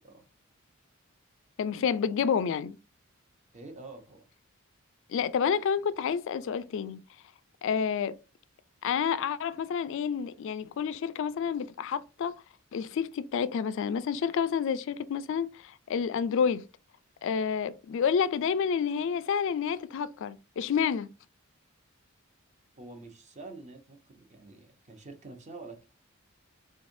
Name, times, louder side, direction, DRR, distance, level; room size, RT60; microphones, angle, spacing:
voice 1, 1.6-2.8 5.1-7.0 7.6-8.2 8.8-12.3 12.7-16.6 17.2-21.1, left 7 dB, 60° left, 0.3 m, -29 dB
voice 2, 3.5-4.2 22.8-25.8, right 3 dB, 35° right, 0.8 m, -47 dB
3.6 x 3.2 x 2.6 m
head